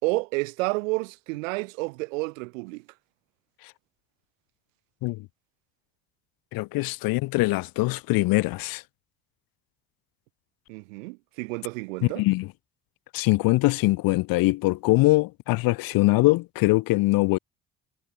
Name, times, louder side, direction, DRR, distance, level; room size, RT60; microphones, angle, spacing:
voice 1, 0.0-2.8 10.7-12.2, right 27 dB, 70° right, 5.5 m, -30 dB
voice 2, 6.5-8.8 12.2-12.5 13.1-17.4, left 21 dB, 60° left, 1.5 m, -22 dB
figure-of-eight pair, 55°, 40 cm